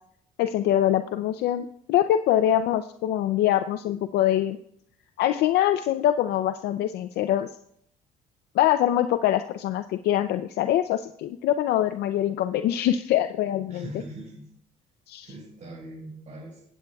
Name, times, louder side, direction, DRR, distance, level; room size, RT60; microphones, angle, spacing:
voice 1, 0.4-4.6 5.2-7.5 8.5-13.9 15.1-15.3, left 12 dB, 75° left, 9 dB, 0.5 m, -24 dB
voice 2, 13.7-14.5 15.2-16.6, right 1 dB, 45° right, -4 dB, 4.3 m, -41 dB
18.0 x 8.3 x 2.3 m, 0.70 s
cardioid pair, 110°, 17 cm